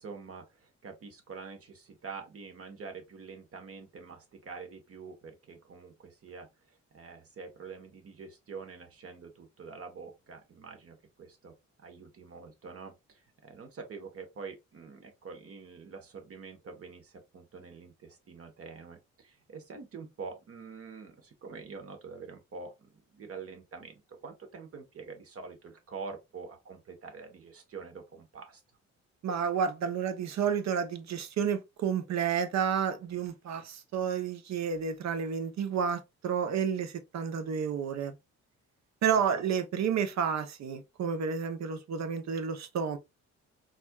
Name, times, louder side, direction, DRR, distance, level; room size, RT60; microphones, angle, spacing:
voice 1, 0.0-11.5 11.8-28.6 39.0-39.4, right 5 dB, 50° right, 1.2 m, -46 dB
voice 2, 29.2-38.2 39.0-43.0, right 7 dB, 65° right, 0.7 m, -30 dB
4.1 x 2.4 x 2.3 m
cardioid pair, 100°, 29 cm